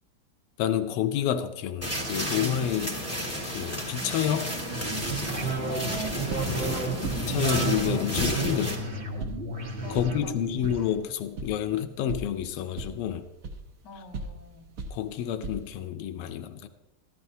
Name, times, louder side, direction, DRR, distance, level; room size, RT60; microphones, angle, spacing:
voice 1, 0.6-3.0 3.4-4.6 7.3-8.8 9.9-13.3 14.9-16.7, left 10 dB, 90° left, 9 dB, 1.5 m, -29 dB
sound 1, 1.8-8.7, equal, 10° left, 1.4 m, -32 dB
sound 2, 4.6-10.9, right 3 dB, 35° right, 1.2 m, -33 dB
voice 2, 5.7-7.3 9.8-10.4 13.8-14.7, left 1 dB, 55° left, 1 dB, 1.9 m, -42 dB
sound 3, 6.9-15.9, right 3 dB, 60° right, 0.9 m, -41 dB
14.5 x 12.5 x 2.7 m, 1.0 s
omnidirectional pair, 2.4 m